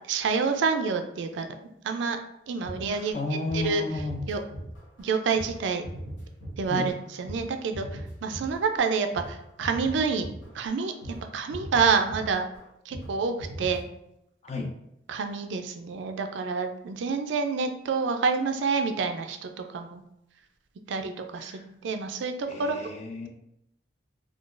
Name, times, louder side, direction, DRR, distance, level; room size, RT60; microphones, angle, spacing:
voice 1, 0.1-1.5 1.8-2.2 2.5-3.2 3.5-3.8 4.3-4.4 5.0-5.8 6.6-10.3 10.5-12.4 12.9-13.8 15.1-20.0 20.9-22.8, right 5 dB, 80° right, 6 dB, 0.4 m, -28 dB
sound 1, 2.6-3.2 3.4-3.7 3.9-5.1 5.3-13.1 13.4-13.8, right 1 dB, 85° left, 1.4 m, -39 dB
voice 2, 2.9-4.2 6.7-6.9 14.4-14.7 21.3-21.7 22.5-23.3, left 3 dB, 35° left, 1 dB, 0.5 m, -33 dB
3.7 x 2.3 x 2.4 m, 0.81 s
head